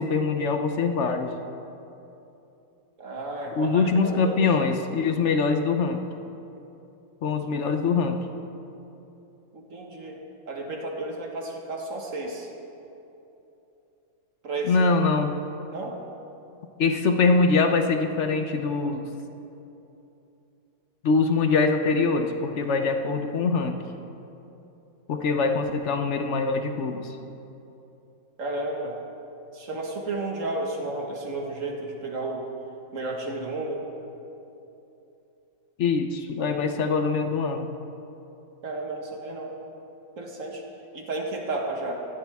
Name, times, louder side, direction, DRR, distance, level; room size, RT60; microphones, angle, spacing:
voice 1, 0.0-1.3 3.6-6.0 7.2-8.2 14.6-15.3 16.8-19.0 21.0-23.7 25.1-27.2 35.8-37.7, left 4 dB, 60° left, 6 dB, 0.7 m, -23 dB
voice 2, 3.0-4.4 9.5-12.5 14.4-14.9 15.7-16.0 28.4-29.0 29.5-32.4 32.9-33.9 38.6-39.6 40.2-40.6 40.9-42.1, right 2 dB, 45° right, 0 dB, 1.8 m, -32 dB
18.0 x 14.5 x 3.5 m, 2.9 s
omnidirectional pair, 2.0 m